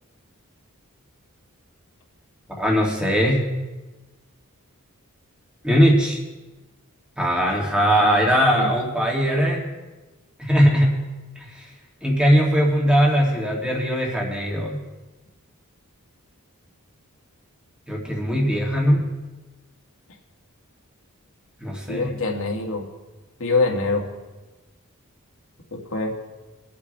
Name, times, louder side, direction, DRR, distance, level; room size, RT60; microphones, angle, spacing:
voice 1, 2.6-3.4 5.6-6.2 7.2-9.7 10.4-11.0 11.4-11.6 12.0-14.8 17.9-19.0 21.6-22.1, equal, 5° right, -2 dB, 2.7 m, -20 dB
voice 2, 21.9-22.8 23.4-24.0 25.7-26.1, left 3 dB, 65° left, 0 dB, 2.3 m, -24 dB
24.0 x 8.6 x 3.4 m, 1.2 s
head